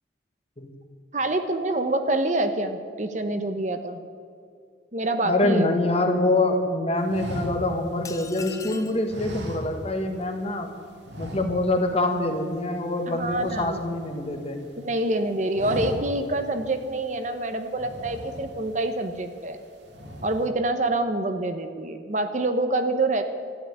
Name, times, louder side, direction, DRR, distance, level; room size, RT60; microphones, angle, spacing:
voice 1, 1.1-4.0 4.9-5.7 13.1-13.8 14.8-19.6 20.2-23.2, right 2 dB, 40° right, 8 dB, 0.9 m, -26 dB
voice 2, 5.2-10.7 11.2-14.6, left 2 dB, 30° left, 5 dB, 1.5 m, -25 dB
sound 1, 7.1-8.5 9.1-10.2 10.4-10.6 11.0-11.9 12.2-12.4 12.7-14.4 14.8-15.1 15.4-16.4 16.8-16.9 17.7-18.8 19.3-19.6 19.9-20.5, equal, 70° right, 2.4 m, -37 dB
sound 2, 8.1-9.0, left 5 dB, 15° left, 0.9 m, -40 dB
13.5 x 10.0 x 9.4 m, 2.3 s
head